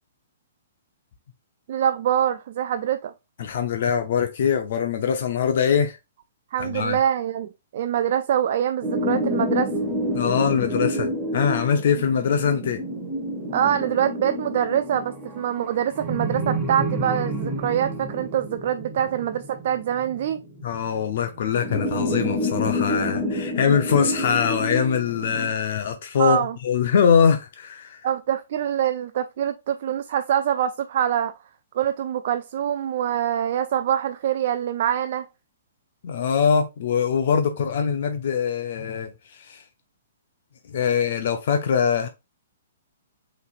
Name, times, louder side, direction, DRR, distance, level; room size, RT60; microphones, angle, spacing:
voice 1, 1.7-3.1 6.5-9.7 12.0-12.1 13.5-20.4 26.2-26.6 28.0-31.3 31.7-35.3, right 10 dB, 55° right, 0.3 m, -24 dB
voice 2, 3.4-6.0 6.6-7.0 10.1-11.1 11.3-12.8 20.6-28.0 36.0-39.1 39.5-39.6 40.7-42.1, left 7 dB, 60° left, 0.6 m, -22 dB
sound 1, 8.8-20.6 21.5-25.5, equal, 5° right, 0.9 m, -28 dB
5.7 x 3.2 x 2.4 m
hypercardioid pair, 150°, 0 cm